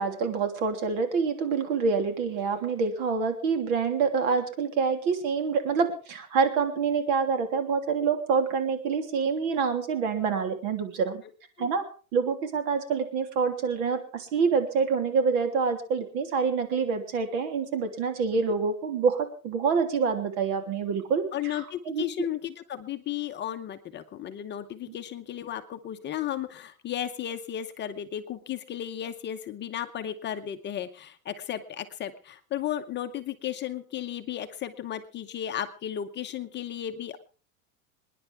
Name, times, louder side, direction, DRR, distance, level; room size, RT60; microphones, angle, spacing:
voice 1, 0.0-11.2 11.6-11.8 12.1-22.0, right 5 dB, 60° right, 6 dB, 3.2 m, -26 dB
voice 2, 21.3-37.2, left 10 dB, 25° left, 7 dB, 0.9 m, -34 dB
27.0 x 10.0 x 3.5 m, 0.36 s
supercardioid pair, 135°, 42 cm